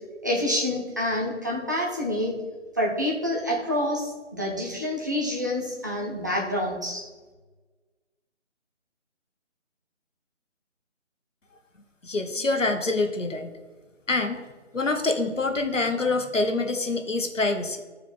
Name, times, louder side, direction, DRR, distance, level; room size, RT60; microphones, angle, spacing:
voice 1, 0.2-2.3 2.8-7.0, left 1 dB, 15° right, -3 dB, 0.7 m, -27 dB
voice 2, 12.0-13.5 14.1-14.4 14.7-17.9, left 3 dB, 85° left, 5 dB, 1.3 m, -26 dB
13.0 x 4.7 x 4.2 m, 1.3 s
figure-of-eight pair, 160°, 37 cm